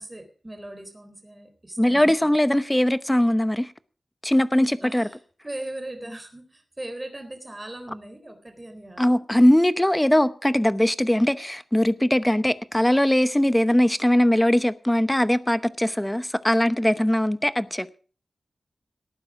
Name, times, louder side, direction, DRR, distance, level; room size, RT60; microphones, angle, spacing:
voice 1, 0.0-2.0 4.8-5.2 5.4-9.2, right 1 dB, 20° right, 3.9 m, -39 dB
voice 2, 1.8-3.7 4.2-5.1 9.0-17.9, left 1 dB, 10° left, 0.8 m, -20 dB
18.5 x 9.6 x 4.8 m
wide cardioid pair, 110°, 0 cm